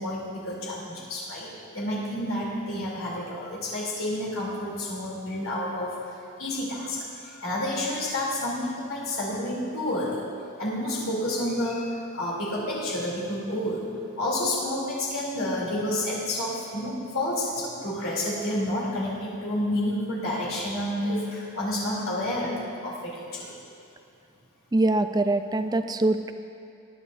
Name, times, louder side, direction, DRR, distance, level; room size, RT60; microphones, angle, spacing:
voice 1, 0.0-10.2 10.6-13.8 14.2-23.6, left 1 dB, 75° left, -6 dB, 3.2 m, -30 dB
voice 2, 24.7-26.3, right 2 dB, 20° right, 9 dB, 0.4 m, -23 dB
20.0 x 10.5 x 2.7 m, 2.6 s
head